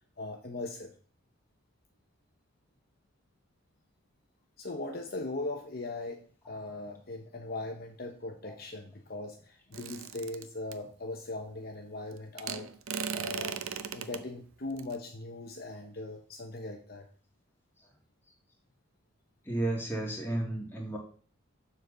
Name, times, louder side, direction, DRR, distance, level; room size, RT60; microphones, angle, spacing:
voice 1, 0.2-0.9 4.6-12.7 13.1-13.6 13.9-17.1, left 2 dB, 45° left, 3 dB, 0.9 m, -39 dB
sound 1, 9.7-10.7 12.4-14.2 14.8-15.0, right 7 dB, 80° right, 0.6 m, -37 dB
voice 2, 19.5-21.0, right 1 dB, 10° left, -1 dB, 2.0 m, -34 dB
7.2 x 4.1 x 6.6 m, 0.43 s
head